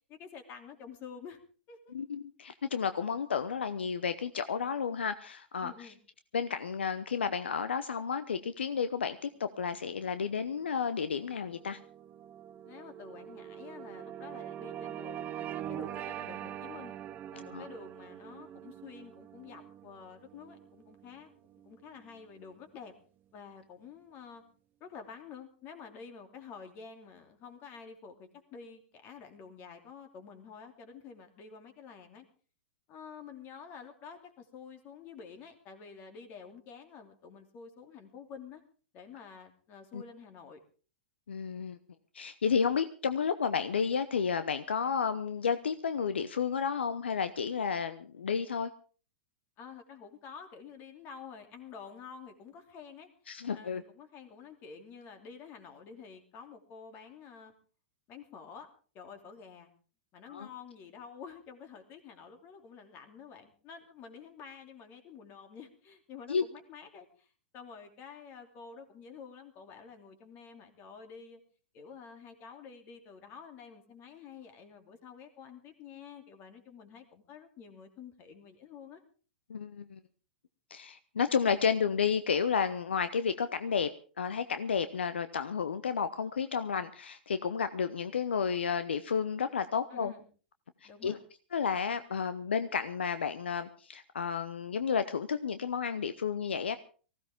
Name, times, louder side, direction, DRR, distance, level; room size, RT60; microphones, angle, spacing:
voice 1, 0.1-1.4 1.7-1.9 5.6-6.0 12.6-16.9 17.3-22.9 23.3-24.4 24.8-32.2 32.9-38.6 38.9-40.6 49.6-53.1 53.5-57.5 58.1-58.7 58.9-59.7 60.1-67.3 67.5-71.4 71.7-79.0 89.9-90.3 90.8-91.2, left 6 dB, 35° left, 6 dB, 2.9 m, -49 dB
voice 2, 1.9-5.9 6.3-11.8 17.5-17.7 39.9-40.0 41.3-41.8 42.1-48.7 53.3-53.8 60.3-60.5 66.3-66.4 79.5-80.0 80.7-83.9 84.2-90.1 91.0-91.2 91.5-96.8, left 6 dB, 80° left, 12 dB, 0.8 m, -31 dB
sound 1, 9.8-22.4, right 10 dB, 30° right, 0.6 m, -44 dB
19.5 x 15.5 x 3.6 m, 0.39 s
hypercardioid pair, 110°, 6 cm